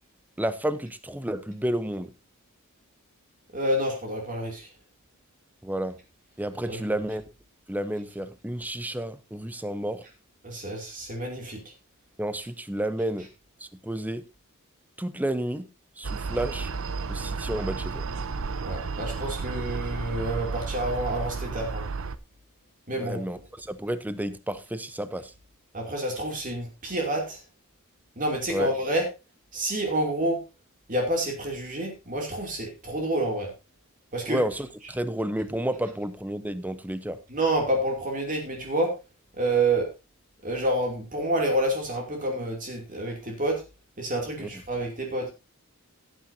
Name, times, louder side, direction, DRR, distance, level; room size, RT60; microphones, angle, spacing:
voice 1, 0.4-2.1 5.6-6.0 6.4-7.2 7.7-10.1 12.2-13.3 13.6-14.2 15.0-15.7 16.0-16.7 17.1-18.1 23.0-25.3 28.5-28.7 34.3-37.2 44.4-44.5, right 1 dB, 10° right, 13 dB, 0.8 m, -31 dB
voice 2, 3.5-4.7 6.7-6.8 10.4-11.6 18.6-21.8 22.9-23.2 25.7-27.4 28.2-29.0 29.5-30.4 30.9-33.5 34.1-34.4 37.3-38.9 39.4-39.9 40.4-43.6 44.0-45.3, right 1 dB, 35° right, 1 dB, 2.8 m, -28 dB
sound 1, 16.0-22.2, right 4 dB, 65° right, 0.7 m, -32 dB
17.0 x 8.8 x 2.7 m, 0.27 s
head